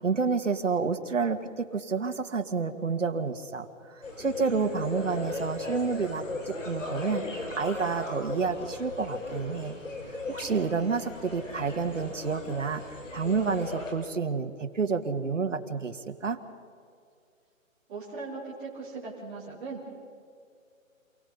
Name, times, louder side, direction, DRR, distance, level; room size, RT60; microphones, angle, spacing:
voice 1, 0.0-3.7 4.2-9.8 10.3-12.8 13.1-16.4, right 5 dB, 65° right, 6 dB, 1.8 m, -29 dB
sound 1, 4.0-13.9, left 2 dB, 65° left, 5.5 m, -37 dB
voice 2, 17.9-20.0, right 4 dB, 10° right, -11 dB, 3.5 m, -39 dB
28.5 x 17.5 x 5.5 m, 2.3 s
hypercardioid pair, 175°, 41 cm